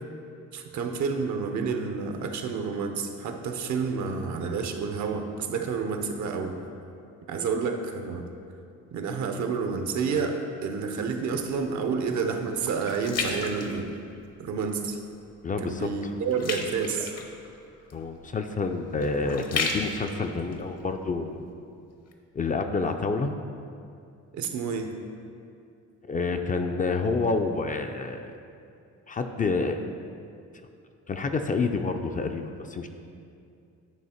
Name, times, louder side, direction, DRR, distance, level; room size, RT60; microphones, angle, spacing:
voice 1, 0.5-6.6 7.3-8.3 8.9-13.9 14.4-15.0 15.6-17.1 24.3-24.9, right 5 dB, 70° right, 5 dB, 0.7 m, -29 dB
sound 1, 11.3-14.5 15.0-15.3 15.6-21.5 22.1-22.2, left 4 dB, 55° left, 0.8 m, -35 dB
voice 2, 15.4-15.9 17.9-21.4 22.4-23.3 26.1-28.3 29.1-29.8 31.1-32.9, left 4 dB, 30° left, 6 dB, 0.4 m, -28 dB
9.3 x 3.2 x 4.3 m, 2.5 s
cardioid pair, 90°, 30 cm